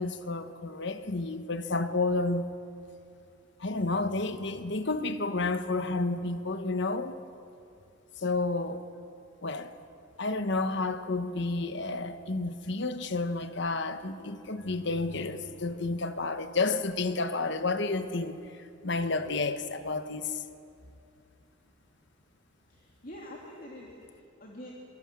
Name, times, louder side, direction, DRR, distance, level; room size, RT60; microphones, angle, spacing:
voice 1, 0.0-2.5 3.6-7.2 8.2-8.8 9.4-9.7 10.2-20.4, left 3 dB, 60° left, 1.3 m, -31 dB
voice 2, 22.7-24.7, left 1 dB, 45° left, 2.8 m, -46 dB
26.5 x 23.5 x 7.5 m
head